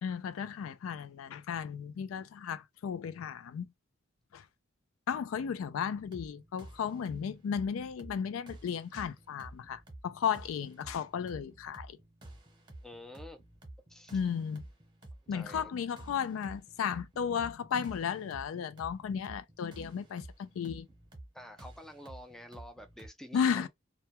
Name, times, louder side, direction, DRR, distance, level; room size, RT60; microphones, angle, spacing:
voice 1, 0.0-3.7 4.3-4.4 5.1-12.0 14.1-14.7 15.3-20.9 23.3-23.7, left 7 dB, 80° left, 0.3 m, -34 dB
sound 1, 6.0-23.1, right 1 dB, 20° right, 0.8 m, -51 dB
voice 2, 12.8-13.4 13.9-14.2 15.3-15.8 21.3-23.7, left 1 dB, ahead, 0.4 m, -49 dB
2.2 x 2.1 x 2.8 m
head